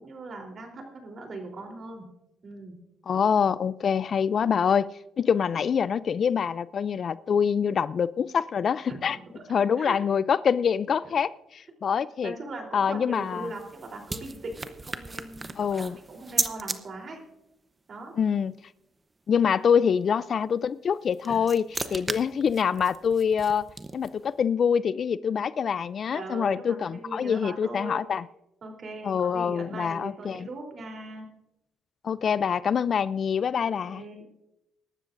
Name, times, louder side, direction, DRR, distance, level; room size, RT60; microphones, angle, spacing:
voice 1, 0.0-2.1 2.4-2.8 8.9-10.0 12.2-17.2 17.9-18.1 21.3-21.5 21.9-22.0 26.1-28.0 28.6-31.3 33.6-34.2, right 2 dB, 50° right, 2 dB, 3.4 m, -40 dB
voice 2, 3.1-9.2 9.5-12.3 12.7-13.5 15.6-16.0 18.2-18.5 19.3-21.6 21.9-23.7 23.9-28.2 29.0-30.5 32.0-34.0, left 7 dB, 50° left, 18 dB, 0.3 m, -25 dB
sound 1, 13.1-16.8 20.9-24.3, right 3 dB, 25° right, 0.8 m, -35 dB
24.0 x 12.5 x 2.6 m, 0.91 s
cardioid pair, 90°, 0 cm